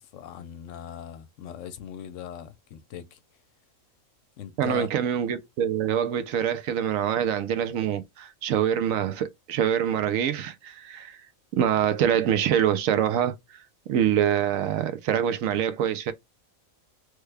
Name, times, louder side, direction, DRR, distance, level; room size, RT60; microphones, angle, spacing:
voice 1, 0.0-3.2 4.4-4.9, left 10 dB, 70° left, 0.9 m, -39 dB
voice 2, 4.6-11.2 11.5-13.6 13.9-16.1, right 9 dB, 80° right, 1.0 m, -25 dB
3.3 x 2.2 x 3.2 m
omnidirectional pair, 1.4 m